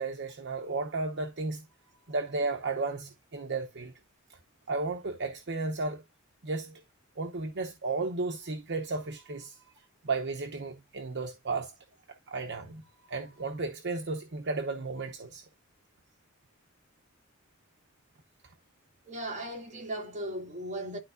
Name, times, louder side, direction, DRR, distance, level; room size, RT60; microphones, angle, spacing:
voice 1, 0.0-1.6 2.1-3.9 4.3-4.4 4.7-6.0 6.4-6.8 7.2-9.6 10.0-11.7 12.3-12.8 13.1-15.4, right 3 dB, 55° right, 0.9 m, -34 dB
voice 2, 19.0-21.0, right 1 dB, 35° right, 2.5 m, -37 dB
12.0 x 4.4 x 2.6 m
head